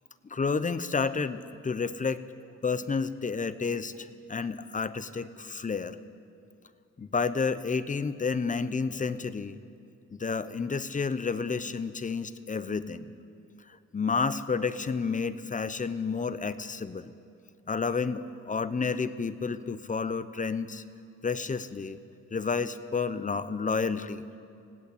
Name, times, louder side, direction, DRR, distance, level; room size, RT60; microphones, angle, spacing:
voice 1, 0.3-2.2 2.6-6.0 7.0-9.6 10.1-13.0 13.9-17.1 17.7-20.8 21.2-22.0 22.3-24.2, left 5 dB, 25° left, 13 dB, 0.9 m, -30 dB
19.5 x 16.5 x 8.5 m, 2.4 s
cardioid pair, 90°, 30 cm